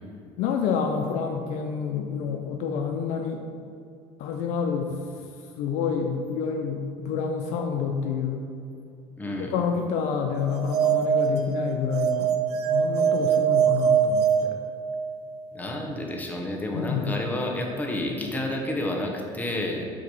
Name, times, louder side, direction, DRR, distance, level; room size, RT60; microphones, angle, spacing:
voice 1, 0.4-3.4 4.2-5.0 5.6-8.4 9.4-12.3 12.6-14.6 16.7-17.1, left 6 dB, 75° left, 3 dB, 0.5 m, -28 dB
voice 2, 9.2-9.5 15.5-19.9, left 1 dB, 15° left, 0 dB, 1.0 m, -30 dB
sound 1, 10.5-15.3, right 7 dB, 60° right, 0.4 m, -23 dB
7.6 x 2.9 x 5.4 m, 2.4 s
cardioid pair, 110°, 12 cm